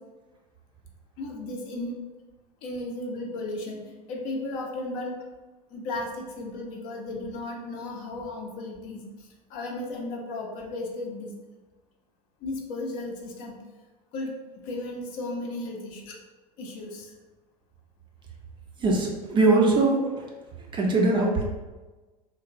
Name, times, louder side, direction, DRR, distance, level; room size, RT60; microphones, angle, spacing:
voice 1, 1.2-1.9 2.6-5.1 5.7-9.0 9.5-11.3 12.4-13.5 14.1-14.3 14.7-16.2 16.6-17.1, left 2 dB, 45° left, 0 dB, 0.6 m, -35 dB
voice 2, 18.8-20.0 20.7-21.4, right 2 dB, 25° right, -1 dB, 0.4 m, -21 dB
3.0 x 2.1 x 2.5 m, 1.2 s
figure-of-eight pair, 75°, 21 cm